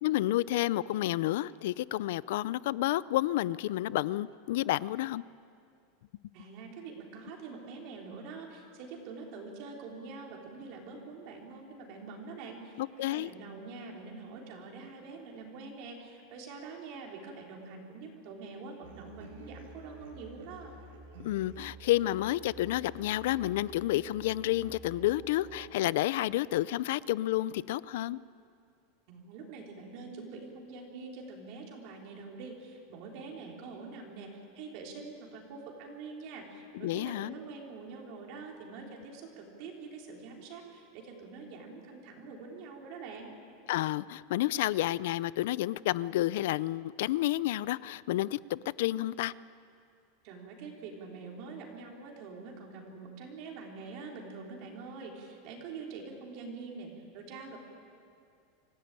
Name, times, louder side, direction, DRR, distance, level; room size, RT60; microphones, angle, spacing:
voice 1, 0.0-5.2 12.8-13.3 21.2-28.2 36.7-37.4 43.7-49.3, left 15 dB, 60° left, 20 dB, 0.4 m, -30 dB
voice 2, 6.3-20.7 29.1-43.3 50.2-57.6, right 4 dB, 40° right, 0 dB, 3.3 m, -45 dB
sound 1, 18.8-25.7, right 3 dB, 70° right, 4.2 m, -50 dB
26.0 x 15.5 x 9.0 m, 2.4 s
supercardioid pair, 180°, 0 cm